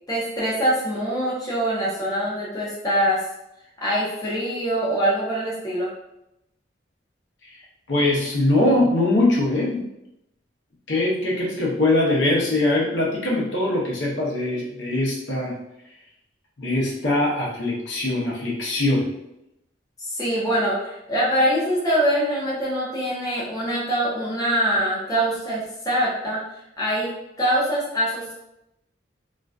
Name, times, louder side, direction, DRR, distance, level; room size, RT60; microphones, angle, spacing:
voice 1, 0.1-3.2 3.8-5.9 20.1-26.4 26.8-27.1 27.4-28.4, equal, 20° left, -6 dB, 0.6 m, -23 dB
voice 2, 7.9-9.8 10.9-15.5 16.6-19.1, left 2 dB, 75° left, -3 dB, 0.6 m, -22 dB
2.4 x 2.2 x 2.3 m, 0.87 s
head